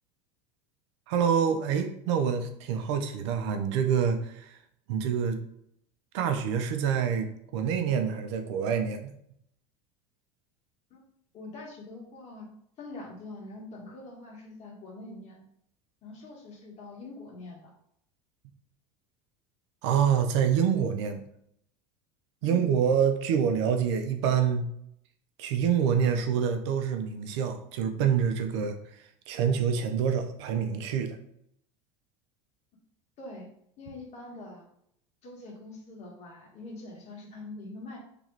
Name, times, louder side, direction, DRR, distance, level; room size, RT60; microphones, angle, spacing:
voice 1, 1.1-4.5 4.9-5.4 6.1-9.1 19.8-21.2 22.4-24.7 25.4-28.8 29.3-31.2, right 7 dB, 75° right, 6 dB, 0.6 m, -26 dB
voice 2, 11.3-12.5 12.8-15.4 16.0-17.7 22.4-22.7 33.2-33.5 33.8-34.7 35.2-38.0, left 2 dB, 45° left, -1 dB, 1.5 m, -44 dB
3.0 x 2.9 x 3.9 m, 0.72 s
supercardioid pair, 100°, 15 cm